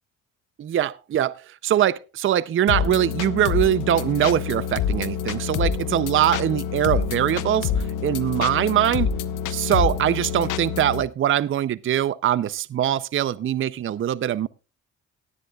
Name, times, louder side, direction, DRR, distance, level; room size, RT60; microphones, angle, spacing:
voice 1, 0.6-9.1 9.5-14.5, right 11 dB, 45° right, 0.5 m, -22 dB
sound 1, 2.7-11.0, left 7 dB, 85° left, 0.9 m, -27 dB
18.0 x 10.5 x 2.3 m
cardioid pair, 90°, 30 cm